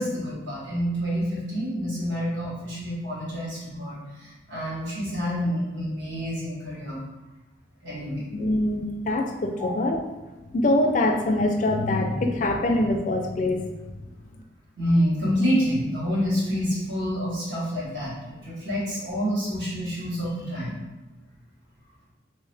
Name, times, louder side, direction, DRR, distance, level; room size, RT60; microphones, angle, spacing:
voice 1, 0.0-7.0 7.8-8.3 9.6-9.7 14.8-20.8, equal, 75° right, -7 dB, 1.4 m, -28 dB
voice 2, 8.3-10.0 10.5-13.6, left 1 dB, 40° left, 4 dB, 0.3 m, -24 dB
3.0 x 2.7 x 3.3 m, 1.1 s
head